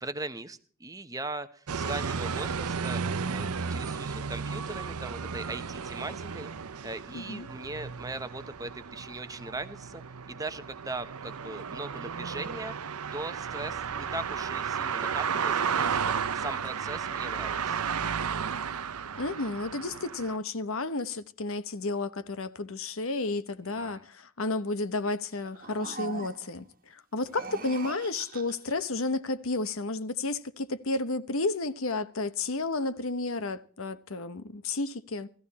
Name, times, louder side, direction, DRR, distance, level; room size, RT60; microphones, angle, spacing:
voice 1, 0.0-6.5 6.8-10.0 10.3-12.8 13.1-17.8 23.6-24.0, right 2 dB, 15° right, 0.9 m, -39 dB
sound 1, 1.7-20.4, right 6 dB, 85° right, 0.7 m, -33 dB
voice 2, 7.1-7.5 19.1-35.3, left 3 dB, 70° left, 1.0 m, -32 dB
sound 2, 25.3-26.7 27.2-28.8, right 4 dB, 40° right, 1.6 m, -42 dB
18.0 x 14.5 x 4.2 m
head